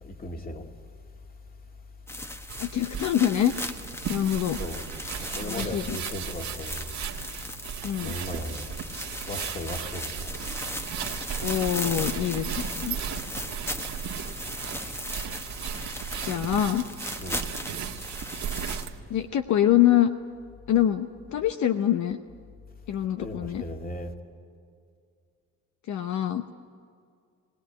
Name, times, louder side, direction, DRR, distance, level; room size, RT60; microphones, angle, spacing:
voice 1, 0.0-0.6 4.6-4.8 5.2-7.0 8.0-8.7 9.3-10.3 17.2-17.4 23.2-24.1, left 1 dB, 30° left, 3 dB, 2.2 m, -36 dB
sound 1, 2.1-18.9, left 1 dB, 10° left, 1.1 m, -38 dB
sound 2, 2.5-19.0, right 8 dB, 65° right, 1.6 m, -36 dB
voice 2, 2.6-3.5 4.1-4.6 5.4-6.0 7.8-8.1 11.4-13.0 16.2-16.9 19.1-20.1 20.7-22.2 22.9-23.6 25.9-26.4, left 11 dB, 70° left, 8 dB, 0.9 m, -25 dB
21.0 x 18.0 x 9.2 m, 2.3 s
cardioid pair, 90°, 30 cm